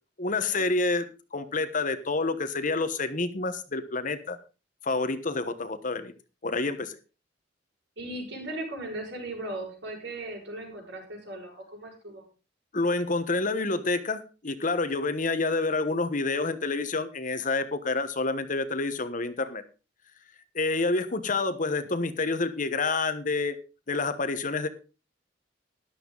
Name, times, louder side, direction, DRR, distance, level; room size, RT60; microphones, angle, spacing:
voice 1, 0.2-1.1 1.3-4.4 4.8-6.1 6.4-7.0 12.7-19.6 20.5-23.5 23.9-24.7, left 3 dB, 45° left, 11 dB, 1.2 m, -28 dB
voice 2, 8.0-12.2, right 1 dB, 65° right, 1 dB, 5.9 m, -37 dB
13.5 x 11.5 x 4.0 m, 0.32 s
head